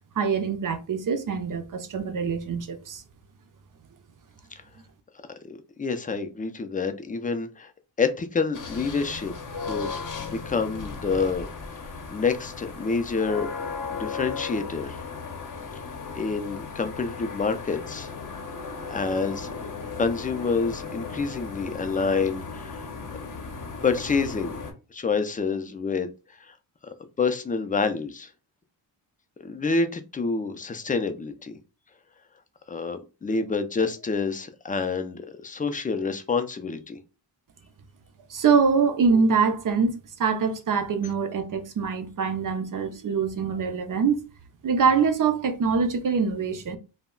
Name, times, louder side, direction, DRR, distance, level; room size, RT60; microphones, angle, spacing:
voice 1, 0.2-3.0 38.3-44.3 44.6-46.8, right 5 dB, 45° right, 0.5 m, -24 dB
voice 2, 5.4-7.7 8.0-9.3 9.7-9.9 10.2-11.5 11.7-13.5 13.9-15.0 16.1-18.1 18.9-19.5 20.0-22.9 23.8-24.6 24.9-26.1 26.4-26.6 26.8-28.3 29.4-31.6 32.7-37.0, left 4 dB, 20° left, 0.3 m, -28 dB
sound 1, 8.5-24.7, left 5 dB, 45° left, 0.7 m, -36 dB
2.2 x 2.1 x 3.6 m
cardioid pair, 80°, 45 cm